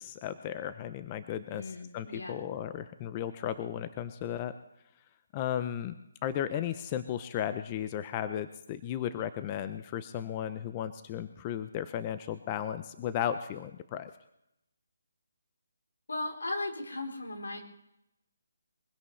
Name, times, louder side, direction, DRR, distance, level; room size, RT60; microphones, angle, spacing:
voice 1, 0.0-1.6 1.9-4.5 5.3-5.9 6.2-14.1, left 10 dB, 25° left, 11 dB, 0.6 m, -35 dB
voice 2, 1.5-2.4 16.1-17.6, left 2 dB, 85° left, 2 dB, 3.6 m, -37 dB
23.0 x 16.5 x 3.3 m, 0.84 s
figure-of-eight pair, 155°, 0 cm